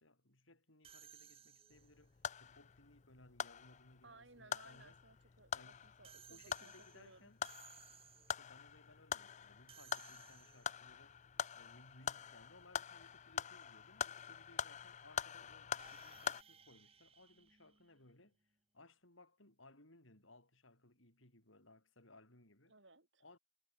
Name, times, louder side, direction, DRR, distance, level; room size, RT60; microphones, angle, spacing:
voice 1, 0.0-5.0 5.5-5.9 6.1-7.4 8.3-11.2 11.5-18.4 18.7-22.7 23.2-23.4, left 2 dB, 80° left, 7.4 m, -64 dB
sound 1, 0.8-2.1 6.0-8.6 9.7-10.9 15.8-18.3, right 8 dB, 30° right, 1.3 m, -62 dB
sound 2, 1.7-16.4, left 8 dB, 35° left, 0.5 m, -45 dB
voice 2, 4.0-7.3 22.7-23.2, right 3 dB, 65° right, 7.7 m, -62 dB
head